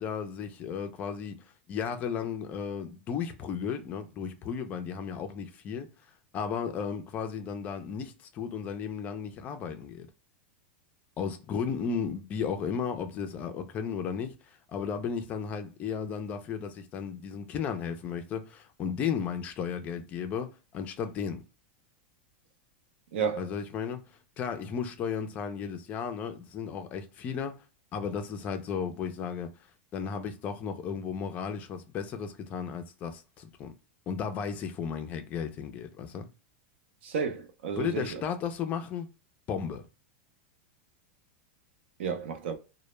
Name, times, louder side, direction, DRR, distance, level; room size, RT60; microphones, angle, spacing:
voice 1, 0.0-5.9 6.3-10.1 11.2-14.3 14.7-21.4 23.4-24.0 24.4-27.6 27.9-29.5 29.9-33.7 34.1-36.3 37.8-39.1 39.5-39.8, left 7 dB, 25° left, 0.3 m, -34 dB
voice 2, 23.1-23.4 37.0-38.2 42.0-42.6, right 6 dB, 80° right, 0.6 m, -32 dB
2.0 x 2.0 x 3.0 m
supercardioid pair, 160°, 6 cm